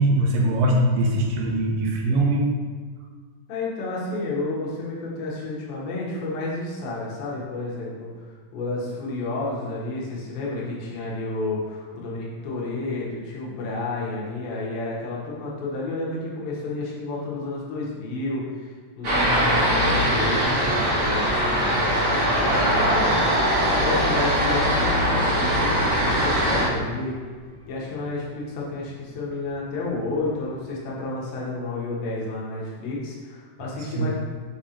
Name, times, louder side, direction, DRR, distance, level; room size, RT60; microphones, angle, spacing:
voice 1, 0.0-2.5 34.0-34.1, right 1 dB, 80° right, 0 dB, 2.6 m, -21 dB
voice 2, 3.5-23.3 23.5-27.2 27.7-34.1, left 2 dB, 90° left, -5 dB, 3.1 m, -31 dB
sound 1, 19.0-26.7, equal, 55° right, 0.8 m, -21 dB
Boat Water vehicle / Alarm, 20.2-30.9, equal, 70° left, 2.1 m, -41 dB
7.3 x 2.9 x 5.0 m, 1.5 s
omnidirectional pair, 4.1 m